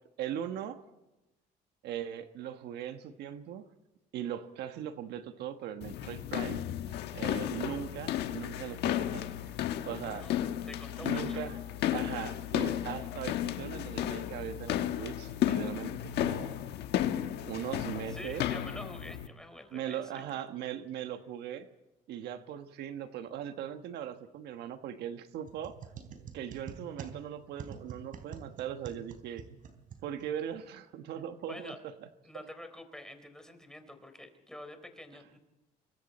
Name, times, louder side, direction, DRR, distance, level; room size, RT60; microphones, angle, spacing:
voice 1, 0.2-0.8 1.8-3.6 4.1-6.6 7.1-9.5 9.8-10.3 11.0-11.6 11.9-16.5 17.4-18.4 19.7-21.7 22.1-25.8 26.3-29.4 30.0-31.9, right 10 dB, 80° right, 8 dB, 1.3 m, -39 dB
sound 1, 5.8-19.3, left 11 dB, 80° left, 1.3 m, -33 dB
voice 2, 10.0-10.4 10.7-11.5 18.0-20.4 31.5-31.8 32.2-35.4, left 1 dB, 5° left, 7 dB, 3.9 m, -47 dB
sound 2, 25.4-30.6, right 7 dB, 55° right, 3.6 m, -47 dB
26.0 x 23.5 x 4.3 m, 0.98 s
cardioid pair, 110°, 17 cm